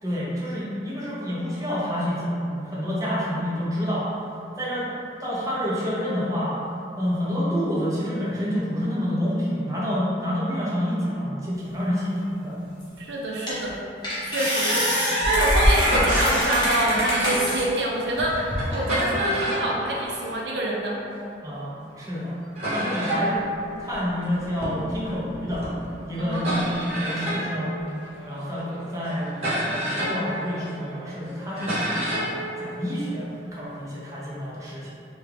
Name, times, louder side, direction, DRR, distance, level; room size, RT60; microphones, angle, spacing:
voice 1, 0.0-4.1 4.6-4.9 5.2-6.6 7.0-12.6 21.4-22.3 22.7-23.4 23.8-25.6 26.0-27.7 28.2-32.2 32.6-34.9, equal, 20° right, -8 dB, 0.6 m, -28 dB
sound 1, 12.8-12.9 13.5-13.7 14.0-17.6 18.2-18.8, equal, 25° left, 0.8 m, -23 dB
voice 2, 13.0-13.8 14.2-18.4 18.7-21.0 26.2-26.7, right 1 dB, 80° right, -3 dB, 0.5 m, -26 dB
sound 2, 15.7-21.0 21.7-21.8 22.0-22.1 22.6-33.7, equal, 35° right, 1.0 m, -31 dB
3.4 x 2.3 x 3.3 m, 2.7 s
head